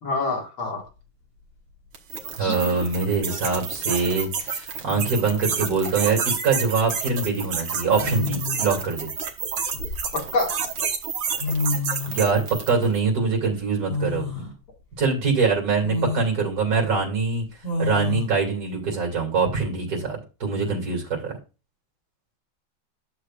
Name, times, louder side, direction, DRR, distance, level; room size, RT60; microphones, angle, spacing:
voice 1, 0.0-0.8 2.4-2.5 10.1-10.6, left 3 dB, 85° left, 0 dB, 2.9 m, -26 dB
sound 1, 0.8-0.9 2.4-2.9 4.4-4.5 4.9-5.4 6.7-6.9 8.0-8.8 9.4-10.5 11.1-11.2 11.4-12.3 13.9-14.5 15.0-15.1 15.8-16.3 17.6-18.3, left 3 dB, 55° left, 4.1 m, -29 dB
sound 2, 1.9-12.9, right 6 dB, 70° right, 1.9 m, -30 dB
voice 2, 2.4-9.1 12.1-14.5 15.0-17.4 17.8-21.3, right 4 dB, 50° right, 0 dB, 3.0 m, -24 dB
11.0 x 6.5 x 2.4 m, 0.31 s
omnidirectional pair, 2.2 m